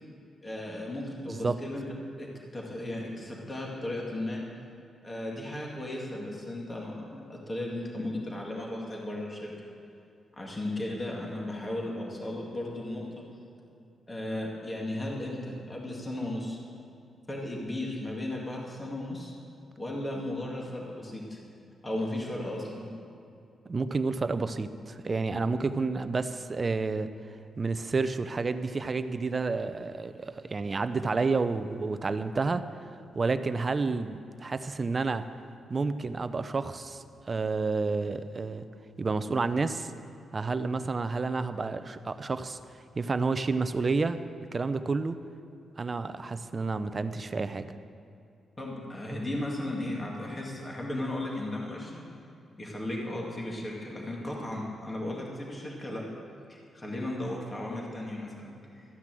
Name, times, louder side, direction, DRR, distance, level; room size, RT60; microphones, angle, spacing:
voice 1, 0.4-1.8 2.2-2.3 2.5-4.4 5.0-9.5 10.3-13.1 14.1-16.6 17.3-19.3 19.8-21.4 21.8-22.9 48.6-52.0 52.6-56.0 56.5-58.9, left 1 dB, 20° left, -2 dB, 2.1 m, -35 dB
voice 2, 1.3-1.6 23.7-27.1 27.6-32.7 33.1-35.3 35.7-38.7 39.0-39.9 40.3-42.6 43.0-44.2 44.5-45.2 45.8-47.7, right 4 dB, 30° right, 11 dB, 0.6 m, -30 dB
13.5 x 9.7 x 7.6 m, 2.6 s
wide cardioid pair, 150°, 0 cm